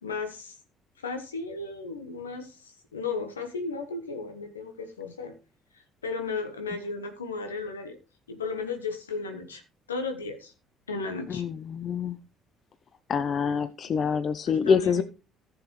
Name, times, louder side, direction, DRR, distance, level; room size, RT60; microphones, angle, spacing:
voice 1, 0.0-0.6 1.0-5.4 5.7-8.0 8.3-9.6 9.9-10.5 10.9-11.4 13.5-14.1 14.5-15.0, left 4 dB, 90° left, 7 dB, 1.3 m, -35 dB
voice 2, 11.3-12.2 13.1-15.0, left 6 dB, 50° left, 14 dB, 0.6 m, -26 dB
14.5 x 7.1 x 3.2 m, 0.33 s
hypercardioid pair, 50°, 0 cm